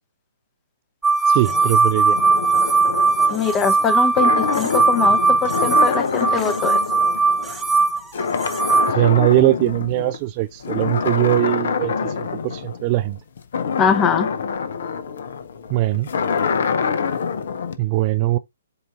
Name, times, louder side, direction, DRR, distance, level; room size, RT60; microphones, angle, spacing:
sound 1, 1.0-8.9, right 4 dB, 5° right, 1.0 m, -19 dB
voice 1, 1.3-2.2 8.9-13.2 15.7-16.1 17.8-18.4, right 16 dB, 35° right, 0.3 m, -20 dB
sound 2, 1.4-7.8 8.1-10.2 10.6-17.8, left 6 dB, 55° left, 0.7 m, -26 dB
voice 2, 3.3-6.8 13.8-14.3, left 6 dB, 20° left, 0.8 m, -22 dB
7.8 x 2.7 x 2.4 m
figure-of-eight pair, 130°, 0 cm